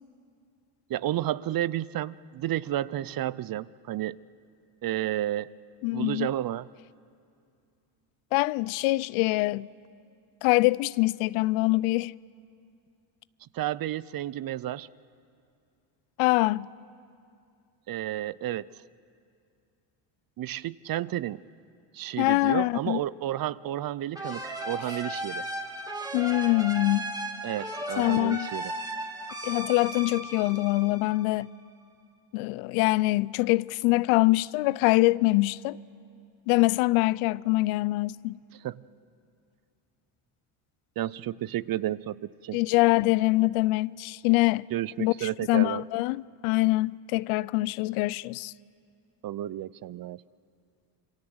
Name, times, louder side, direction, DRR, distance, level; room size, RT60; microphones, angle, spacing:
voice 1, 0.9-4.2 4.8-5.5 5.9-6.7 13.5-14.9 17.9-18.7 20.4-21.4 21.9-25.4 27.4-28.7 38.6-38.8 41.0-42.6 44.7-45.8 49.2-50.2, right 13 dB, 45° right, 0.6 m, -31 dB
voice 2, 5.8-6.3 8.3-9.7 10.4-12.1 16.2-16.7 22.2-23.0 26.1-27.1 28.0-28.5 29.4-31.5 32.3-35.8 36.5-38.4 42.5-44.7 45.0-48.5, left 21 dB, 80° left, 0.6 m, -24 dB
sound 1, 24.1-31.6, right 1 dB, 10° right, 3.0 m, -36 dB
27.0 x 23.5 x 7.9 m
supercardioid pair, 80°, 49 cm